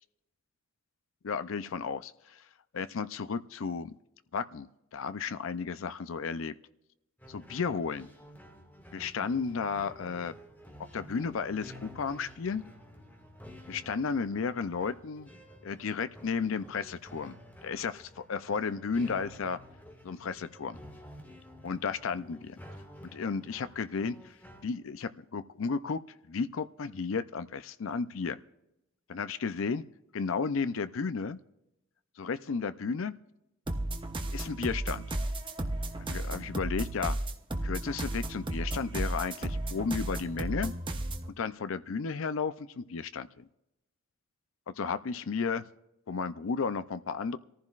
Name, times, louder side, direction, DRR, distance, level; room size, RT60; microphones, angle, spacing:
voice 1, 1.2-2.4 2.7-3.9 4.3-6.6 7.3-8.1 8.9-10.3 10.9-12.7 13.7-15.3 15.6-17.3 17.6-19.6 20.0-20.8 21.6-22.6 23.1-24.3 24.6-28.4 29.1-29.8 30.1-31.4 32.2-33.1 34.3-35.1 36.0-37.2 37.6-40.7 41.4-43.5 44.7-45.6 46.1-47.4, left 5 dB, 70° left, 13 dB, 0.5 m, -33 dB
sound 1, 7.2-24.6, equal, 10° left, 2.0 m, -51 dB
sound 2, 33.7-41.3, right 1 dB, 25° right, 0.8 m, -34 dB
25.5 x 14.5 x 2.4 m, 0.90 s
head